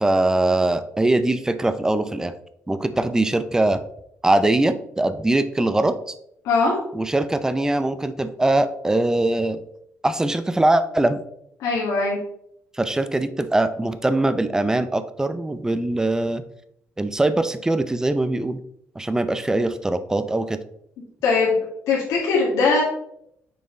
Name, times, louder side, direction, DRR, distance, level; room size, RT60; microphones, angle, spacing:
voice 1, 0.0-2.3 2.7-3.8 4.2-6.1 6.9-9.6 10.0-11.2 12.7-16.4 17.0-18.6 19.0-20.6, right 2 dB, 10° right, 11 dB, 0.5 m, -22 dB
voice 2, 6.4-6.8 11.6-12.2 21.2-22.8, left 4 dB, 85° left, -5 dB, 2.0 m, -20 dB
6.7 x 4.3 x 3.8 m, 0.74 s
cardioid pair, 105°, 5 cm